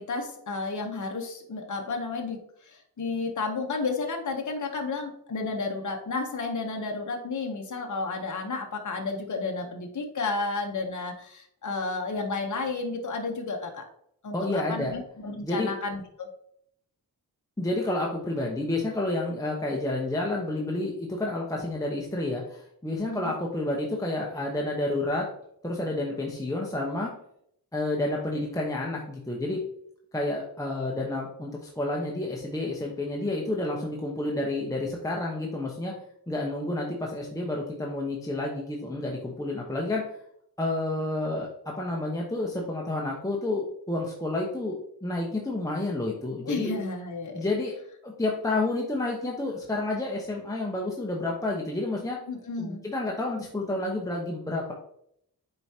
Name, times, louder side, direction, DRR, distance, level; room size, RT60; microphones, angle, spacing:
voice 1, 0.0-13.8 14.2-16.3 23.1-23.3 46.4-47.5 52.3-52.8, left 3 dB, 50° left, 2 dB, 0.9 m, -32 dB
voice 2, 14.3-14.9 15.4-15.7 17.6-25.3 25.6-27.1 27.7-29.6 30.1-35.9 36.3-40.0 40.6-46.8 47.3-47.7 48.0-52.2 52.6-54.7, left 2 dB, 10° left, -2 dB, 1.0 m, -30 dB
7.8 x 4.7 x 2.8 m, 0.72 s
wide cardioid pair, 90°, 39 cm